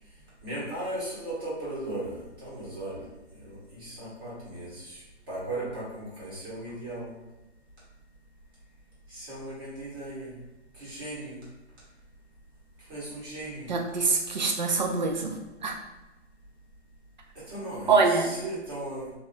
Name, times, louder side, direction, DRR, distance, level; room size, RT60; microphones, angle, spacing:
voice 1, 0.4-3.0 3.4-5.0 5.3-7.1 9.1-10.3 10.7-11.4 12.9-13.7 17.5-19.1, right 1 dB, 20° right, -8 dB, 1.1 m, -37 dB
voice 2, 13.7-15.3 15.6-15.7 17.9-18.3, right 4 dB, 40° right, 3 dB, 0.5 m, -24 dB
3.3 x 2.5 x 4.2 m, 1.0 s
hypercardioid pair, 165°, 36 cm